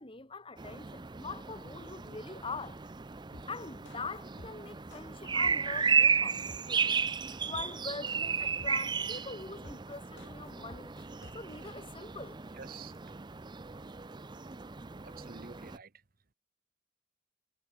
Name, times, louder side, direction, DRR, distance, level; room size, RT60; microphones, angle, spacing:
voice 1, 0.0-2.8 3.5-7.0 7.4-10.9 11.3-12.4, left 4 dB, 25° left, 2.2 m, -43 dB
sound 1, 0.6-15.8, right 5 dB, 25° right, 0.6 m, -34 dB
sound 2, 3.3-11.7, left 2 dB, 70° left, 2.0 m, -53 dB
voice 2, 12.5-13.0 15.0-15.9, right 5 dB, 50° right, 1.1 m, -48 dB
head